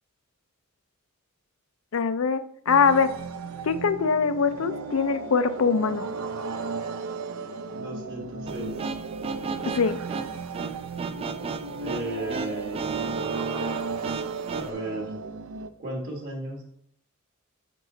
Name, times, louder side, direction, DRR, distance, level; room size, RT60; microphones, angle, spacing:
voice 1, 1.9-2.4 2.7-3.1 3.6-6.0 9.7-10.0, left 5 dB, 70° left, 12 dB, 0.5 m, -22 dB
sound 1, 2.7-15.7, right 4 dB, 80° right, 0.5 m, -35 dB
voice 2, 7.7-8.7 11.8-13.3 14.5-15.1 15.8-16.6, right 2 dB, 50° right, -4 dB, 1.4 m, -34 dB
sound 2, 8.5-14.7, right 5 dB, 25° right, 0.3 m, -34 dB
6.0 x 5.0 x 3.9 m, 0.68 s
head